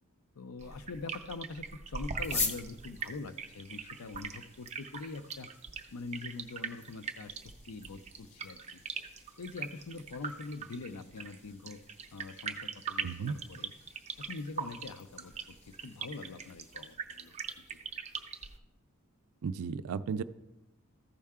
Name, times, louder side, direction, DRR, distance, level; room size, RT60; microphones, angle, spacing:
voice 1, 0.4-5.5 5.9-8.8 9.4-11.8 12.1-13.7 14.2-17.8, left 3 dB, 85° left, 11 dB, 0.5 m, -44 dB
sound 1, 0.6-18.6, right 6 dB, 30° right, 0.6 m, -41 dB
sound 2, 2.2-16.9, left 4 dB, 30° left, 0.9 m, -45 dB
voice 2, 13.0-13.3 19.4-20.2, right 6 dB, 80° right, 13 dB, 0.4 m, -34 dB
14.0 x 5.5 x 3.6 m, 0.97 s
head